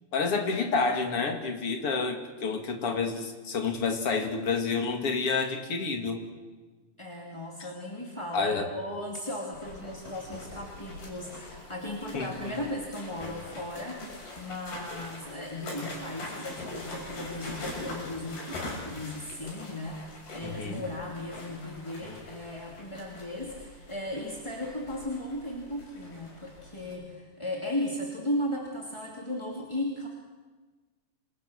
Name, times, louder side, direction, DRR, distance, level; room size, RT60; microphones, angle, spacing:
voice 1, 0.1-6.2 8.3-8.7 12.1-12.6 20.4-20.8, left 4 dB, 40° left, 4 dB, 2.9 m, -29 dB
voice 2, 7.0-30.1, left 1 dB, 10° left, -2 dB, 2.1 m, -36 dB
sound 1, 9.5-26.9, left 2 dB, 90° left, 9.0 m, -43 dB
27.5 x 27.0 x 6.4 m, 1.3 s
omnidirectional pair, 4.4 m